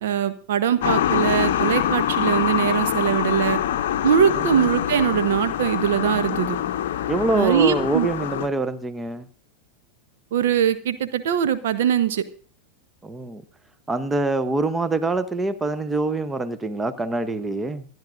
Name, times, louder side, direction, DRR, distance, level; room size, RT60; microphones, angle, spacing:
voice 1, 0.0-3.6 4.0-6.6 7.3-8.1 10.3-12.2, right 9 dB, 55° right, 0.9 m, -21 dB
sound 1, 0.8-8.5, left 11 dB, 55° left, 0.7 m, -24 dB
voice 2, 7.1-9.3 13.0-13.4 13.9-17.9, right 2 dB, 15° right, 0.8 m, -25 dB
26.0 x 11.0 x 2.6 m
figure-of-eight pair, 90°, 0 cm